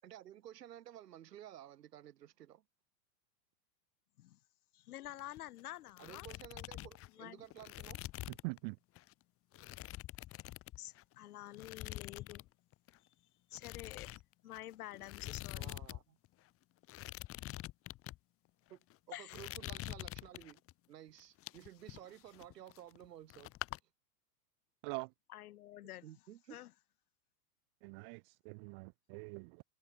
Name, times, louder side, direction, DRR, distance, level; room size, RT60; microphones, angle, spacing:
voice 1, 0.0-2.6 6.0-8.0 15.6-16.2 18.7-18.8 19.1-20.6 20.9-23.5 26.0-26.6, right 11 dB, 90° right, 6.6 m, -53 dB
voice 2, 4.7-6.3 7.1-7.4 10.8-12.5 13.5-14.1 14.4-15.8 19.1-19.5 25.3-26.1 26.5-26.7, left 15 dB, 65° left, 7.6 m, -49 dB
sound 1, 5.1-5.6 5.9-8.6 9.0-9.1 9.5-11.1 11.5-12.5 12.7-13.0 13.5-16.0 16.2-16.3 16.8-18.2 18.7-19.0 19.3-20.7 21.2-23.1 23.3-23.8, left 16 dB, 30° left, 5.4 m, -46 dB
voice 3, 8.4-8.8 24.8-25.1 27.8-29.6, right 36 dB, 20° right, 0.4 m, -44 dB
supercardioid pair, 160°, 47 cm